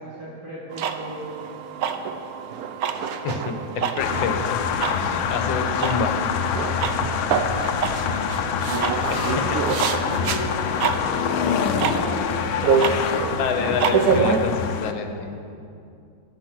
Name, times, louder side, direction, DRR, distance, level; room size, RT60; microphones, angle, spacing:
voice 1, 0.0-1.5 3.5-4.5 7.0-7.8 8.1-8.3 8.8-14.2 15.2-15.4, equal, 50° right, -9 dB, 2.8 m, -37 dB
sound 1, 0.7-14.4, right 6 dB, 65° right, 1.0 m, -27 dB
voice 2, 3.2-6.2 6.5-6.8 7.3-7.4 9.1-9.2 12.7-13.0 13.4-15.3, left 5 dB, 70° left, 6 dB, 1.8 m, -28 dB
sound 2, 4.0-14.9, left 7 dB, 90° left, 1.5 m, -25 dB
14.0 x 10.0 x 6.1 m, 2.5 s
omnidirectional pair, 2.2 m